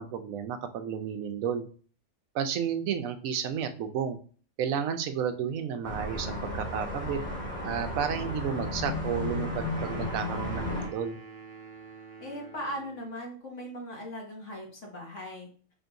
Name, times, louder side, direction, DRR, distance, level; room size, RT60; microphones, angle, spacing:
voice 1, 0.0-1.7 2.3-4.2 4.6-7.2 7.6-11.2, right 7 dB, 90° right, 8 dB, 1.0 m, -32 dB
sound 1, 5.8-10.9, left 1 dB, 40° left, 1.9 m, -34 dB
sound 2, 9.7-13.1, right 5 dB, 45° right, 1.2 m, -47 dB
voice 2, 12.2-15.5, equal, 65° left, -2 dB, 1.9 m, -39 dB
4.3 x 2.7 x 4.5 m, 0.42 s
omnidirectional pair, 1.4 m